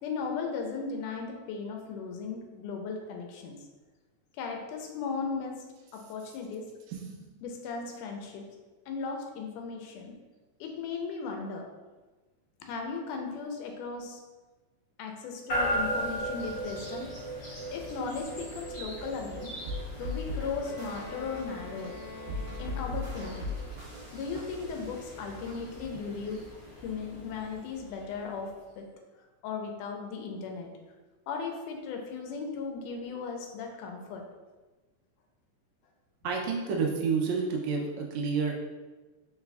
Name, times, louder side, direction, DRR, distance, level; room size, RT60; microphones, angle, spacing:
voice 1, 0.0-3.6 4.4-5.6 5.9-6.7 7.4-8.4 8.9-10.2 10.6-11.7 12.6-14.2 15.0-17.1 17.7-19.5 20.0-22.0 22.6-23.5 24.1-26.4 26.8-28.9 29.4-30.7 31.3-34.3, left 5 dB, 90° left, 3 dB, 2.1 m, -36 dB
voice 2, 6.9-7.4 36.2-38.5, right 5 dB, 75° right, 0 dB, 1.7 m, -30 dB
sound 1, 15.5-28.5, right 1 dB, 35° left, 1.3 m, -38 dB
sound 2, 19.6-25.5, left 2 dB, 60° right, 1.3 m, -39 dB
Bowed string instrument, 20.6-23.3, left 4 dB, 65° left, 1.8 m, -46 dB
4.7 x 4.0 x 2.3 m, 1.2 s
omnidirectional pair, 3.6 m